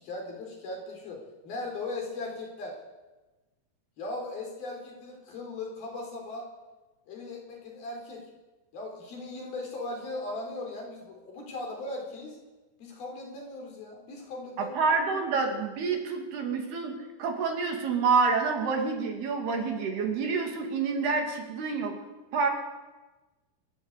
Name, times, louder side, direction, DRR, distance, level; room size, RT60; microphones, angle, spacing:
voice 1, 0.0-2.8 4.0-6.5 7.1-8.3 8.7-12.4 12.8-14.8, left 2 dB, 60° left, 1 dB, 6.0 m, -38 dB
voice 2, 14.6-16.9 17.2-22.0 22.3-22.5, right 4 dB, 65° right, 3 dB, 4.5 m, -28 dB
27.0 x 12.5 x 8.2 m, 1.2 s
omnidirectional pair, 5.1 m